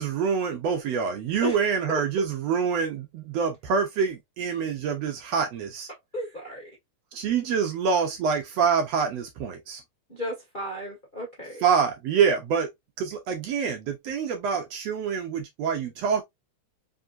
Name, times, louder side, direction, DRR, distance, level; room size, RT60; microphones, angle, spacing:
voice 1, 0.0-5.9 7.1-9.8 11.6-12.7 13.0-16.2, right 6 dB, 70° right, 1.7 m, -26 dB
voice 2, 6.1-6.7 10.1-11.6, left 1 dB, 45° left, 0.6 m, -33 dB
4.6 x 3.5 x 2.5 m
omnidirectional pair, 3.5 m